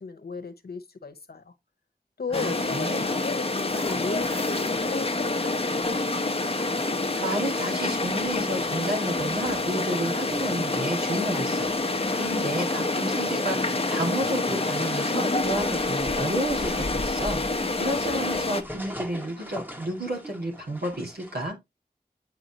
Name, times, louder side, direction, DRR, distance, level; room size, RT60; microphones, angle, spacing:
voice 1, 0.0-1.5 2.2-6.1, left 4 dB, 80° left, 0.9 m, -35 dB
sound 1, 2.3-18.6, left 2 dB, 40° left, 0.8 m, -27 dB
voice 2, 2.3-3.0 6.9-21.6, right 1 dB, 85° right, 1.9 m, -31 dB
sound 2, 3.7-21.5, equal, 10° right, 1.1 m, -43 dB
7.8 x 4.9 x 2.8 m
wide cardioid pair, 65°, 16 cm